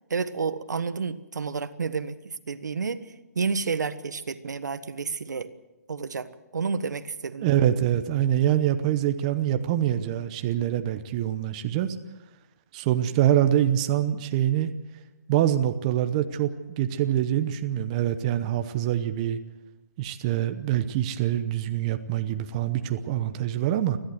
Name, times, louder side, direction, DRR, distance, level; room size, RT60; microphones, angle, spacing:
voice 1, 0.1-5.5 5.9-7.5, right 5 dB, 85° right, 11 dB, 1.4 m, -30 dB
voice 2, 7.4-12.0 12.7-14.7 15.3-19.4 20.0-24.0, right 11 dB, 25° right, 8 dB, 0.8 m, -25 dB
30.0 x 11.5 x 7.9 m, 1.0 s
hypercardioid pair, 165°, 9 cm